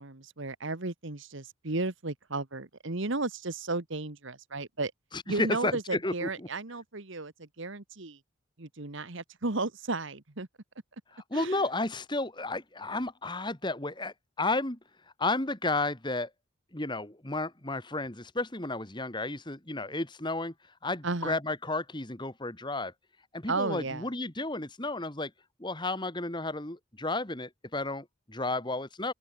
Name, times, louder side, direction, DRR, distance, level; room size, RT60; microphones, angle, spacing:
voice 1, 0.0-4.9 5.3-8.2 8.6-10.5 11.3-11.6 21.0-21.4 23.5-24.1, right 3 dB, 60° right, 1.5 m, -34 dB
voice 2, 5.1-6.5 11.1-14.8 15.2-16.3 16.7-20.5 20.8-22.9 23.3-25.3 25.6-29.1, left 2 dB, 20° left, 2.0 m, -32 dB
open air
head